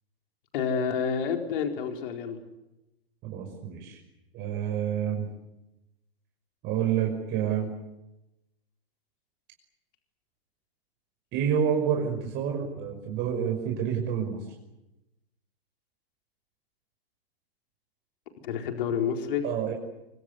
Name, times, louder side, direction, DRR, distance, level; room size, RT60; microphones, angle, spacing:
voice 1, 0.5-2.4 18.4-19.5, left 7 dB, 55° left, 4 dB, 4.5 m, -29 dB
voice 2, 3.2-4.0 4.3-5.3 6.6-7.7 11.3-14.5 19.4-19.7, right 8 dB, 35° right, 2 dB, 5.7 m, -28 dB
25.5 x 24.5 x 8.2 m, 0.93 s
hypercardioid pair, 115°, 31 cm